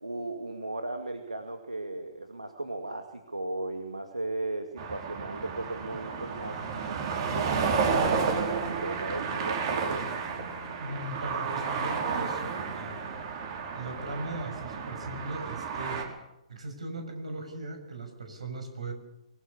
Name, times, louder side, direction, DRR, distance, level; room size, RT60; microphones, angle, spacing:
voice 1, 0.0-6.6 6.9-10.0, right 2 dB, 85° right, 6 dB, 2.4 m, -36 dB
sound 1, 4.8-16.0, right 5 dB, 45° right, 4.9 m, -31 dB
voice 2, 10.8-13.2 13.7-16.1 16.5-18.9, right 2 dB, 70° right, 6 dB, 6.4 m, -38 dB
24.5 x 20.0 x 8.3 m, 0.87 s
figure-of-eight pair, 120°, 4 cm